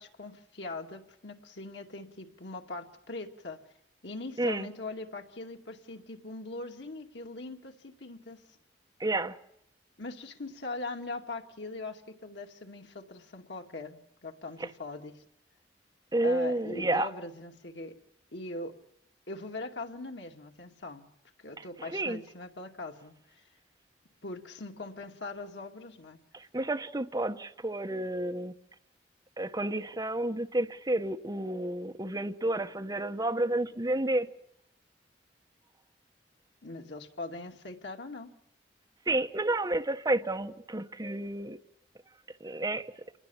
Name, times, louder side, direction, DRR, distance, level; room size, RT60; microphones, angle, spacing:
voice 1, 0.0-3.6 4.0-8.4 10.0-15.2 16.2-18.0 18.3-18.8 19.3-21.1 21.4-23.4 24.2-26.2 36.6-38.3, left 2 dB, 75° left, 2.5 m, -41 dB
voice 2, 4.4-4.7 9.0-9.4 14.6-14.7 16.1-17.1 21.6-22.2 26.3-28.5 29.4-34.3 39.1-41.6 42.4-42.9, right 2 dB, 20° right, 1.1 m, -30 dB
27.5 x 21.0 x 7.3 m
head